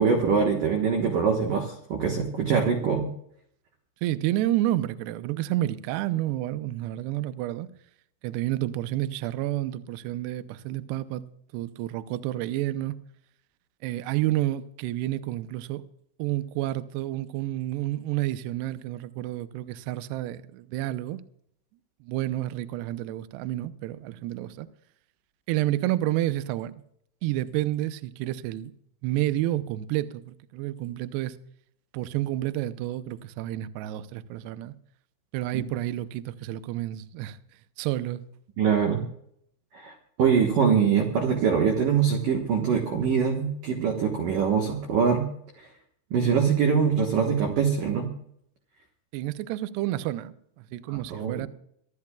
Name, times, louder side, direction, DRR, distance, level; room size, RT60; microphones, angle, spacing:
voice 1, 0.0-3.1 35.5-35.6 38.6-39.0 39.7-39.9 40.2-45.3 46.1-48.1 50.9-51.5, right 6 dB, 65° right, 2.2 m, -23 dB
voice 2, 4.0-7.7 8.2-11.3 11.5-13.0 13.8-15.8 16.2-21.2 22.0-24.7 25.5-26.7 27.2-28.7 29.0-31.4 31.9-34.7 35.3-37.4 37.8-38.2 49.1-51.5, right 15 dB, 80° right, 2.4 m, -30 dB
25.5 x 13.5 x 2.3 m
omnidirectional pair, 5.6 m